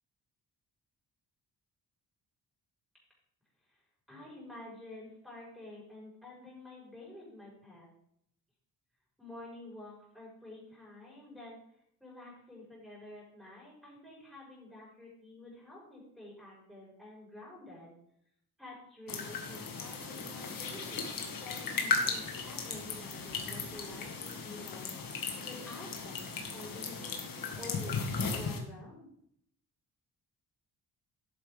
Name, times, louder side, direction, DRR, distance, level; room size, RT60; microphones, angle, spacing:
voice 1, 4.1-7.9 9.2-11.6 12.0-17.9 18.6-24.9 25.4-26.2 26.5-29.0, left 2 dB, ahead, -6 dB, 4.9 m, -49 dB
sound 1, 19.1-28.6, left 4 dB, 60° left, 1.9 m, -36 dB
11.5 x 8.6 x 3.6 m, 0.71 s
wide cardioid pair, 165°, 38 cm